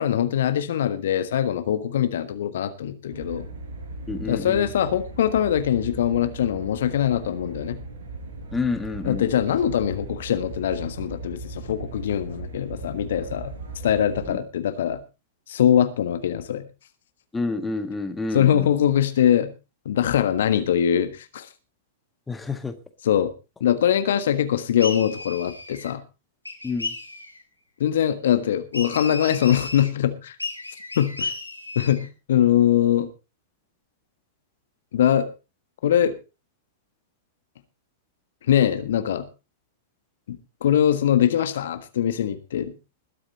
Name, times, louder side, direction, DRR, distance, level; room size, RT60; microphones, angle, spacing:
voice 1, 0.0-3.5 4.2-7.8 9.0-13.5 13.8-15.0 15.5-16.6 18.3-19.5 19.8-21.5 23.0-23.3 23.6-26.0 27.8-30.3 30.9-31.3 31.7-33.1 34.9-35.3 35.8-36.2 38.5-39.3 40.3-42.7, left 10 dB, 55° left, 10 dB, 1.5 m, -22 dB
sound 1, 3.1-14.3, right 3 dB, 60° right, 5.6 m, -38 dB
voice 2, 4.1-4.7 8.5-9.3 14.3-14.4 17.3-18.7 22.3-22.7 26.6-26.9, left 3 dB, 10° left, 8 dB, 1.7 m, -29 dB
sound 2, 24.8-25.9 26.4-27.4 28.7-29.9 30.4-32.1, left 3 dB, 85° left, 3.2 m, -34 dB
20.5 x 8.7 x 4.2 m, 0.30 s
figure-of-eight pair, 100°, 0 cm